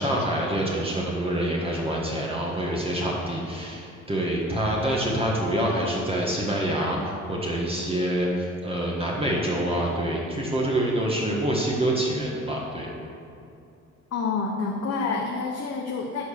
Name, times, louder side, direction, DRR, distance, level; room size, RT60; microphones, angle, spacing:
voice 1, 0.0-12.9, right 1 dB, 20° right, -4 dB, 1.6 m, -26 dB
voice 2, 14.1-16.2, left 4 dB, 55° left, 0 dB, 1.0 m, -28 dB
11.0 x 4.6 x 6.7 m, 2.6 s
cardioid pair, 90°, 30 cm